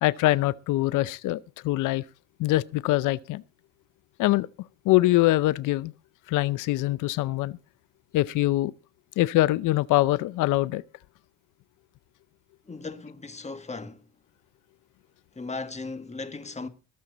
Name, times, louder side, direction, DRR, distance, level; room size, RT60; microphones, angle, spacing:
voice 1, 0.0-2.0 2.4-3.4 4.2-4.5 4.8-5.9 6.3-7.6 8.1-8.7 9.2-10.8, left 17 dB, 85° left, 0.6 m, -23 dB
voice 2, 12.6-14.1 15.3-16.7, left 3 dB, 20° left, 1.7 m, -37 dB
20.5 x 7.5 x 4.0 m
cardioid pair, 90°, 30 cm